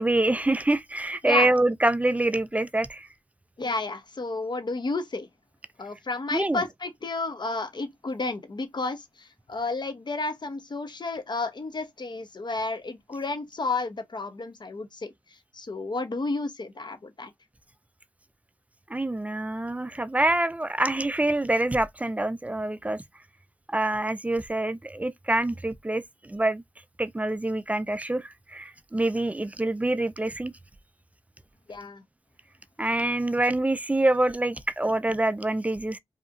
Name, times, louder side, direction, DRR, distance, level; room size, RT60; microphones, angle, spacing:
voice 1, 0.0-3.1 6.3-6.6 18.9-23.0 23.7-26.6 27.0-30.5 32.8-36.0, right 2 dB, 15° right, 0.4 m, -26 dB
voice 2, 3.6-5.3 5.8-15.1 15.5-17.3 31.7-32.0, left 3 dB, 45° left, 0.7 m, -31 dB
2.8 x 2.4 x 2.4 m
cardioid pair, 40°, 11 cm